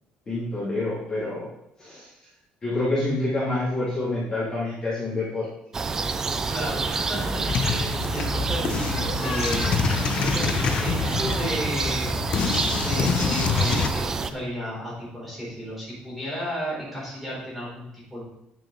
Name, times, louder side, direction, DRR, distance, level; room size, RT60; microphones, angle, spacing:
voice 1, 0.3-1.5 1.8-2.1 2.6-5.5, left 2 dB, 25° left, -10 dB, 2.8 m, -27 dB
sound 1, 5.7-14.3, right 4 dB, 20° right, 0.4 m, -28 dB
voice 2, 6.5-9.7 10.1-12.1 12.7-18.2, equal, ahead, -8 dB, 3.8 m, -33 dB
sound 2, 7.5-13.9, left 6 dB, 40° left, 0.7 m, -26 dB
10.0 x 5.9 x 3.9 m, 0.80 s
cardioid pair, 180°, 3 cm